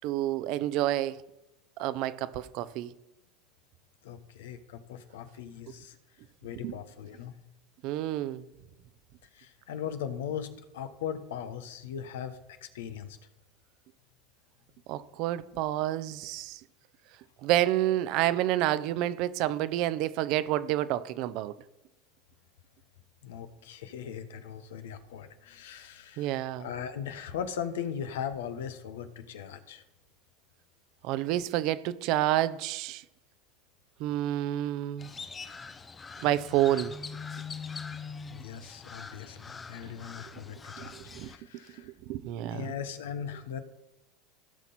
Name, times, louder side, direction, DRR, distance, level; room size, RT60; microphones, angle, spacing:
voice 1, 0.0-1.2 1.8-2.9 5.7-5.8 6.6-6.8 7.8-8.4 14.9-16.6 17.4-21.5 26.2-26.7 31.0-33.0 34.0-35.1 36.2-36.9 39.8-39.9 40.8-41.3 41.8-42.7, right 13 dB, 60° right, 0.6 m, -29 dB
voice 2, 4.0-5.9 6.4-7.3 9.3-13.2 23.2-29.8 38.3-41.9 42.5-43.6, left 8 dB, 80° left, 1.1 m, -39 dB
Crow, 35.0-41.4, left 5 dB, 20° left, 0.7 m, -43 dB
16.5 x 5.9 x 4.2 m
hypercardioid pair, 105°, 0 cm